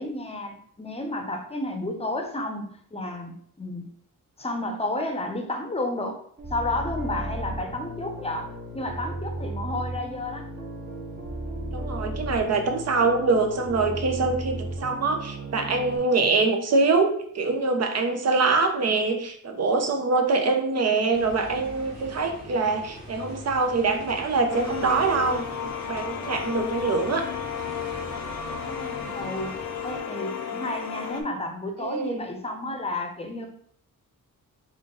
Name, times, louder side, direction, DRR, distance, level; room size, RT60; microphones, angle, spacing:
voice 1, 0.0-3.9 4.4-6.2 6.5-10.4 28.5-33.5, left 1 dB, 20° left, 3 dB, 0.7 m, -32 dB
sound 1, 6.4-16.0, right 1 dB, 30° right, 0.9 m, -35 dB
voice 2, 11.7-27.2 31.8-32.3, right 3 dB, 50° right, 4 dB, 0.6 m, -24 dB
sound 2, 21.1-30.0, equal, 85° right, 1.3 m, -43 dB
sound 3, 24.5-31.2, left 7 dB, 75° left, 0.6 m, -33 dB
3.5 x 2.4 x 3.8 m, 0.62 s
cardioid pair, 95°, 33 cm